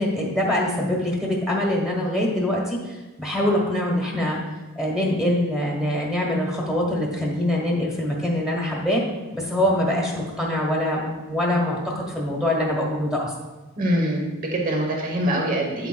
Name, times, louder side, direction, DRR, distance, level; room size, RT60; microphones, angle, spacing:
voice 1, 0.0-4.4 4.7-9.0 9.3-13.3, left 1 dB, 5° right, -2 dB, 1.2 m, -24 dB
voice 2, 13.8-15.9, right 1 dB, 40° right, 0 dB, 1.0 m, -24 dB
8.4 x 7.9 x 2.3 m, 1.2 s
head